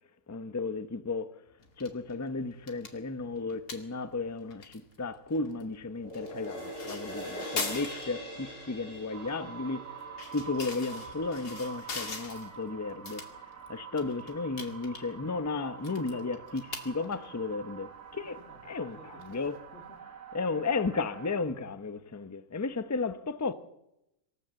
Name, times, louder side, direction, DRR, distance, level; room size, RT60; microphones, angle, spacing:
voice 1, 0.3-1.3 1.8-9.9 10.3-13.2 13.7-18.4 18.6-19.7 20.3-23.5, left 3 dB, 15° left, 0.5 m, -34 dB
sound 1, 1.6-20.0, left 4 dB, 65° left, 2.8 m, -44 dB
sound 2, 5.9-12.5 13.0-13.1, equal, 85° left, 5.5 m, -43 dB
sound 3, 9.1-21.4, right 8 dB, 70° right, 2.6 m, -47 dB
voice 2, 18.4-19.4 19.7-20.3, left 1 dB, 40° left, 3.4 m, -55 dB
25.0 x 14.5 x 7.7 m
omnidirectional pair, 1.8 m